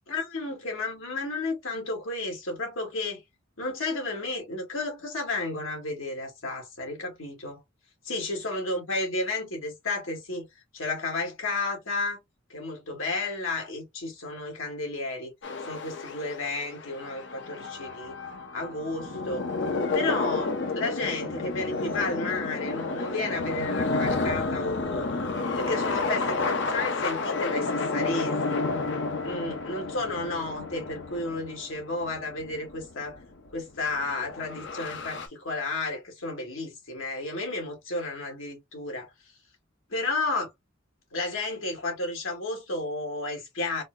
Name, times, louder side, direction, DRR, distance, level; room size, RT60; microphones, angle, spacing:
voice 1, 0.1-3.2 3.6-7.6 8.1-10.5 10.7-12.2 12.5-15.3 15.7-18.2 18.5-19.5 19.9-25.2 25.6-28.6 29.2-33.2 33.5-39.1 39.9-40.5 41.1-43.8, left 2 dB, 80° left, 1.7 m, -32 dB
sound 1, 15.4-33.5 33.7-35.3, left 3 dB, 60° left, 0.8 m, -31 dB
4.1 x 2.0 x 2.6 m
head